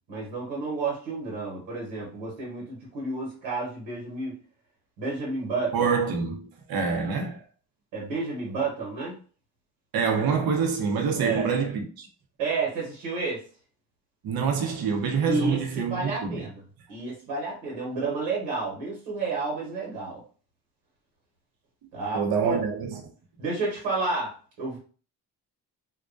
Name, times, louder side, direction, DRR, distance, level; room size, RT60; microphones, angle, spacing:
voice 1, 0.1-4.3 5.0-5.9 7.9-9.2 11.2-11.5 12.4-13.4 15.3-16.6 16.9-20.2 21.9-22.6 23.4-24.8, right 3 dB, 75° right, 1.2 m, -31 dB
voice 2, 5.7-7.4 9.9-12.1 14.2-16.5 22.1-23.0, right 5 dB, 50° right, 0.8 m, -26 dB
2.3 x 2.1 x 2.5 m
hypercardioid pair, 60°, 46 cm